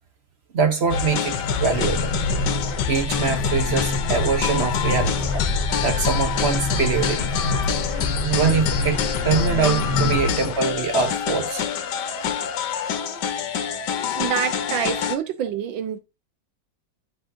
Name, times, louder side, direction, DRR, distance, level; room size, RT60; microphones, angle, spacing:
voice 1, 0.5-2.2 2.9-5.4 5.8-7.3 8.2-11.6, right 5 dB, 55° right, 0.7 m, -23 dB
sound 1, 0.9-15.2, left 6 dB, 65° left, 1.3 m, -25 dB
sound 2, 1.7-10.1, left 2 dB, 10° right, 2.6 m, -28 dB
voice 2, 14.2-16.0, right 9 dB, 75° right, 1.5 m, -26 dB
10.5 x 6.2 x 2.5 m
omnidirectional pair, 2.2 m